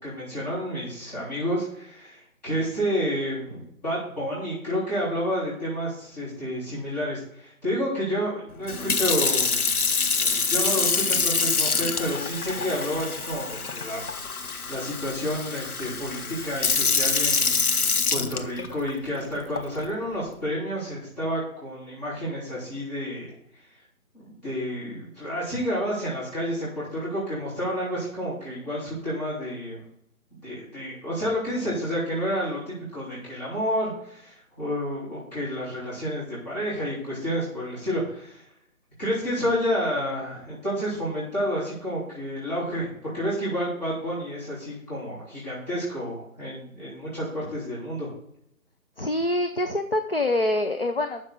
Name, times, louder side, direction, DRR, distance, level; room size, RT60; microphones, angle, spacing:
voice 1, 0.0-9.7 10.1-14.0 14.4-23.3 24.1-29.9 30.4-38.4 39.0-48.1, equal, 30° left, -9 dB, 3.5 m, -30 dB
Sink (filling or washing) / Fill (with liquid), 8.7-18.9 19.6-19.8, left 4 dB, 85° left, 1.0 m, -25 dB
voice 2, 49.0-51.2, left 1 dB, 45° left, 7 dB, 0.5 m, -25 dB
9.3 x 6.5 x 5.1 m, 0.73 s
figure-of-eight pair, 170°, 43 cm